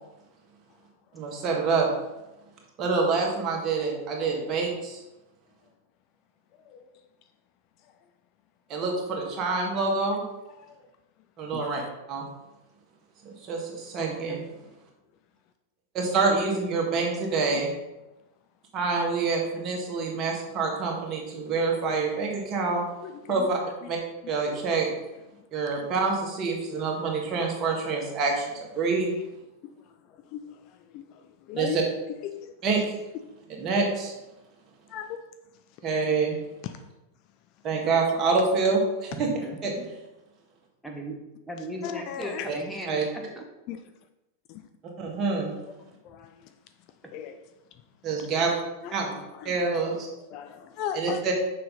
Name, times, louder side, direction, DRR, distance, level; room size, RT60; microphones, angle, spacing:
voice 1, 1.1-1.9 2.8-5.0 8.7-10.2 11.4-11.8 12.1-12.2 13.2-14.4 15.9-17.7 18.7-22.8 23.3-23.6 23.9-24.0 24.3-24.9 25.5-29.1 31.5-31.8 32.6-32.8 33.6-34.1 35.8-36.4 37.6-39.3 39.6-39.7 42.5-42.6 42.9-43.0 45.0-45.5 48.0-48.5 48.9-49.1 49.5-50.1 50.9-51.3, right 4 dB, 30° right, 0 dB, 1.8 m, -26 dB
voice 2, 14.0-14.5 39.2-39.8 40.8-41.2 41.5-43.4 47.0-47.2, right 1 dB, ahead, 0 dB, 1.2 m, -38 dB
voice 3, 23.0-23.5 23.9-24.0 24.2-24.4 29.6-29.7 30.3-30.6 30.9-31.0 31.5-31.8 32.2-32.5 34.9-35.2 36.6-36.7 41.8-42.5 43.7-43.8 44.5-44.6 45.8-46.5 47.1-47.4 48.8-49.1 49.3-49.5 50.3-51.3, left 9 dB, 40° left, 8 dB, 0.4 m, -37 dB
6.4 x 5.7 x 4.0 m, 0.98 s
figure-of-eight pair, 90°, 0 cm